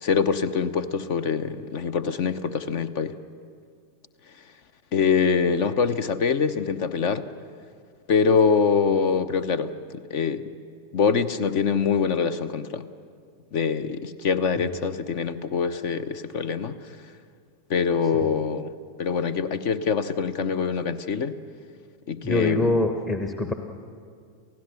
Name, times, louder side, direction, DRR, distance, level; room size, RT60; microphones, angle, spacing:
voice 1, 0.0-3.1 4.9-7.3 8.1-10.4 10.9-12.9 13.5-17.0 17.7-21.3 22.1-22.9, left 5 dB, 45° left, 15 dB, 0.8 m, -24 dB
voice 2, 22.2-23.5, left 1 dB, 15° left, 6 dB, 1.2 m, -24 dB
29.0 x 15.5 x 6.8 m, 2.2 s
figure-of-eight pair, 90°, 0 cm